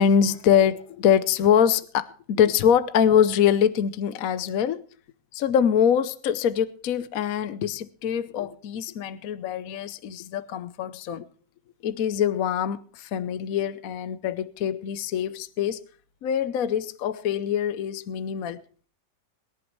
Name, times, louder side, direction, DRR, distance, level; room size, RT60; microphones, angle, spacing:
voice 1, 0.0-4.8 5.3-11.3 11.8-15.8 16.2-18.6, left 8 dB, 60° left, 1.0 m, -24 dB
22.5 x 11.0 x 3.1 m
omnidirectional pair, 1.9 m